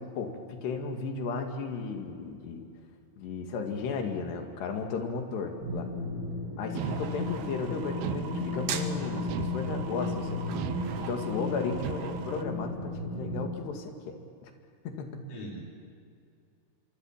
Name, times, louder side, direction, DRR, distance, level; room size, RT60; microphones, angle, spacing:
voice 1, 0.0-2.7 3.2-5.9 6.6-14.5 14.9-15.3, left 4 dB, 85° left, 4 dB, 4.3 m, -35 dB
sound 1, 5.6-13.4, left 2 dB, 25° left, 6.1 m, -35 dB
sound 2, 6.7-12.4, right 7 dB, 60° right, 2.1 m, -41 dB
sound 3, 6.8-7.5 8.0-8.8 9.3-10.1 10.5-11.4 11.8-12.4, right 13 dB, 75° right, 2.7 m, -38 dB
voice 2, 15.3-15.8, equal, 50° left, -2 dB, 6.5 m, -43 dB
25.5 x 25.0 x 7.4 m, 2.4 s
omnidirectional pair, 4.7 m